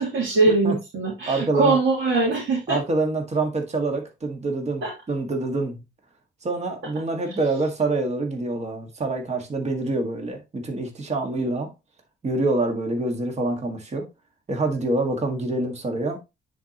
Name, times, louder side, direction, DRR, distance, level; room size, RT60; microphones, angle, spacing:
voice 1, 0.0-2.8 4.8-4.9, right 3 dB, 70° right, 3.1 m, -22 dB
voice 2, 1.3-1.8 2.7-5.8 6.4-11.7 12.2-14.0 14.5-16.2, right 2 dB, 35° right, 1.8 m, -26 dB
9.6 x 4.5 x 3.0 m
cardioid pair, 90°, 20 cm